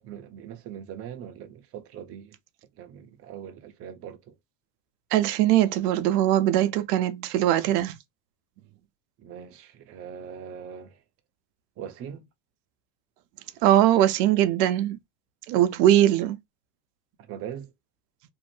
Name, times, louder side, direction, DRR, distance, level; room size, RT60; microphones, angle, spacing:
voice 1, 0.0-2.4 2.8-4.3 9.2-11.0 11.8-12.3 17.3-17.7, right 8 dB, 30° right, 0.5 m, -41 dB
voice 2, 5.1-8.0 13.6-15.0 15.5-16.4, right 12 dB, 80° right, 0.6 m, -21 dB
2.6 x 2.0 x 3.0 m
supercardioid pair, 125°, 47 cm